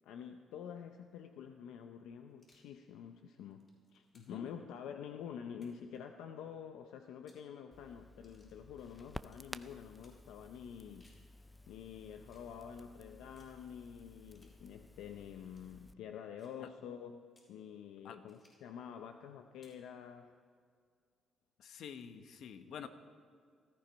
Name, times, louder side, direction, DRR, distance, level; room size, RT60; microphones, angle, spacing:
voice 1, 0.0-11.1 11.7-20.4, left 8 dB, 90° left, 6 dB, 0.7 m, -48 dB
sound 1, 2.4-2.7 3.4-4.5 5.5-6.0 7.1-7.5 8.2-8.6 9.3-9.5 10.0-10.2 10.8-11.3 12.3-12.5 13.4-13.6 14.3-14.6 15.5-15.7 16.4-16.6 17.3-17.6 18.3-18.7 19.5-19.9, left 2 dB, 35° left, 5.8 m, -70 dB
voice 2, 4.1-4.5 16.6-16.7 18.0-18.2 21.6-22.9, left 7 dB, 70° left, 9 dB, 1.1 m, -48 dB
Crackle, 7.7-15.9, left 1 dB, 10° left, 0.5 m, -54 dB
18.5 x 14.5 x 5.2 m, 2.1 s
cardioid pair, 90°, 0 cm